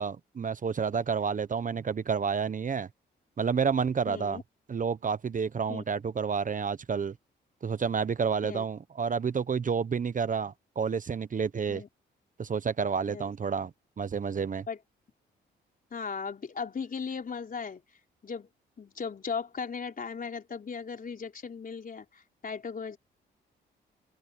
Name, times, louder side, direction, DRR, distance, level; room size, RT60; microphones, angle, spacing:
voice 1, 0.0-2.9 3.4-4.4 4.7-7.1 7.6-11.8 12.4-13.7 14.0-14.6, right 6 dB, 40° right, 1.0 m, -30 dB
voice 2, 4.1-4.4 5.7-5.8 8.4-8.6 11.7-11.9 13.1-13.3 14.7-14.8 15.9-17.8 18.2-18.5 18.8-23.0, left 5 dB, 45° left, 4.0 m, -37 dB
cardioid pair, 65°, 20 cm